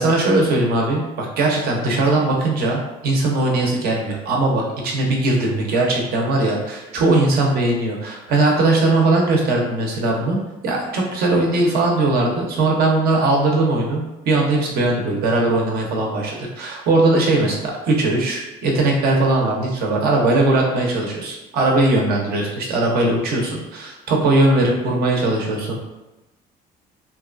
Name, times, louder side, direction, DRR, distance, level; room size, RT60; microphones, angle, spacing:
voice 1, 0.0-10.4 10.6-25.8, right 2 dB, 65° right, -1 dB, 0.7 m, -19 dB
2.8 x 2.2 x 2.4 m, 1.0 s
cardioid pair, 110°, 17 cm